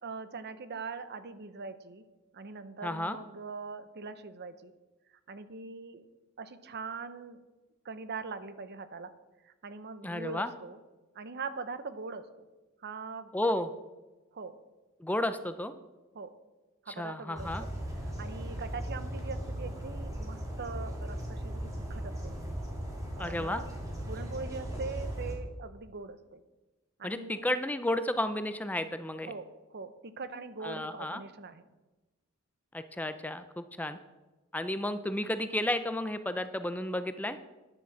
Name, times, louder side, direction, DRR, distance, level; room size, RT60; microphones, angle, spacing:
voice 1, 0.0-2.0 2.3-4.7 5.3-6.1 6.4-7.4 7.8-9.1 9.4-10.8 11.1-12.3 12.8-13.3 14.3-14.6 16.1-16.3 16.8-17.7 18.2-22.4 23.2-23.7 24.1-26.4 27.0-27.5 29.3-31.7, right 4 dB, 50° right, 12 dB, 0.8 m, -42 dB
voice 2, 2.8-3.2 10.0-10.5 13.3-13.7 15.0-15.7 16.9-17.6 23.2-23.6 27.0-29.3 30.6-31.2 32.7-34.0 34.5-37.4, left 1 dB, 5° left, 11 dB, 0.4 m, -32 dB
sound 1, 17.4-25.4, equal, 15° right, 2.4 m, -37 dB
10.0 x 7.4 x 7.2 m, 1.1 s
head